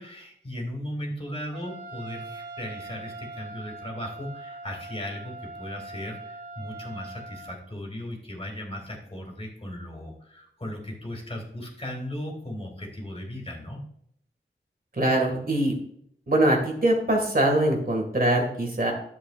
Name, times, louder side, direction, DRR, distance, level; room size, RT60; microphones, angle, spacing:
voice 1, 0.0-13.8, left 1 dB, 30° left, 0 dB, 2.5 m, -37 dB
Trumpet, 1.5-7.6, right 3 dB, 65° right, 2.9 m, -42 dB
voice 2, 15.0-15.8 16.3-18.9, right 1 dB, 50° right, 1 dB, 2.0 m, -23 dB
11.0 x 7.5 x 2.5 m, 0.69 s
wide cardioid pair, 55°, 19 cm